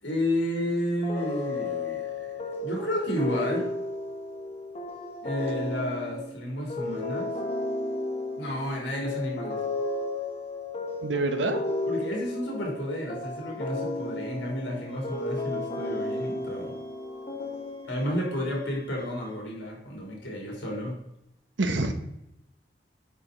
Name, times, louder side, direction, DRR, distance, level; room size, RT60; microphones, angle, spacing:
voice 1, 0.0-2.3 2.6-3.7 5.2-7.3 8.4-9.6 11.9-16.7 17.9-21.0, equal, 90° left, -1 dB, 3.0 m, -31 dB
sound 1, 1.0-18.2, left 2 dB, 35° left, 1.0 m, -33 dB
voice 2, 11.0-11.6 21.6-21.9, right 2 dB, 90° right, 8 dB, 0.9 m, -26 dB
sound 2, 14.9-19.4, equal, 55° right, 3.3 m, -55 dB
9.2 x 5.0 x 3.9 m, 0.83 s
head